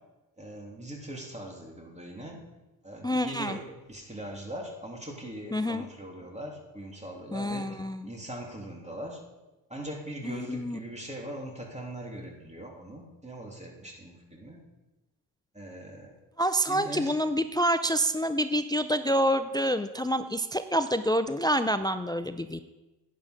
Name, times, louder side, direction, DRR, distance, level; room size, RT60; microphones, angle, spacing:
voice 1, 0.4-2.4 2.8-9.2 9.7-14.6 15.5-16.1 16.7-17.1, right 1 dB, 15° right, 0 dB, 2.9 m, -41 dB
voice 2, 3.0-3.6 5.5-5.8 7.3-8.1 10.2-10.8 16.4-22.6, equal, 10° left, 11 dB, 0.4 m, -27 dB
10.0 x 6.6 x 5.0 m, 1.1 s
hypercardioid pair, 50°, 49 cm